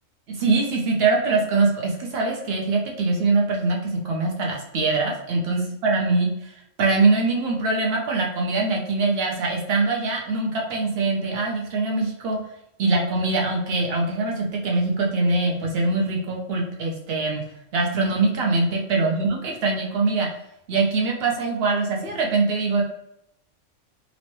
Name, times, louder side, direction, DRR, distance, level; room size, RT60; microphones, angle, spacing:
voice 1, 0.3-12.4 12.8-17.4 17.7-20.3 20.7-22.8, right 3 dB, 60° right, -1 dB, 0.8 m, -23 dB
3.0 x 2.0 x 2.9 m, 0.80 s
omnidirectional pair, 1.3 m